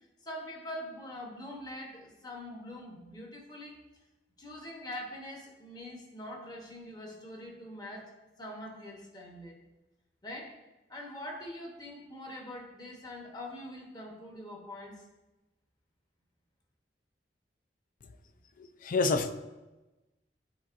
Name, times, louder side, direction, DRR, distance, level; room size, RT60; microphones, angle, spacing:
voice 1, 0.2-3.8 4.4-8.1 8.4-9.6 10.2-10.6 10.9-15.0, left 1 dB, 20° left, 0 dB, 1.1 m, -43 dB
voice 2, 18.6-19.3, left 3 dB, 50° left, 10 dB, 0.4 m, -28 dB
10.0 x 4.2 x 2.6 m, 1.1 s
head